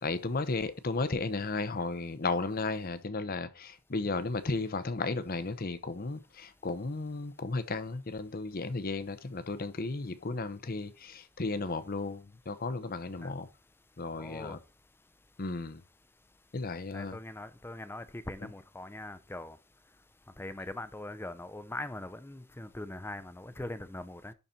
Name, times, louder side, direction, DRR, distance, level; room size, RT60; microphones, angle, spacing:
voice 1, 0.0-13.5 14.0-14.6 15.4-15.8 16.5-17.2, left 3 dB, 45° left, 0.8 m, -34 dB
voice 2, 14.1-14.6 16.9-19.6 20.4-24.3, left 1 dB, 10° left, 0.5 m, -41 dB
11.0 x 4.2 x 4.3 m
head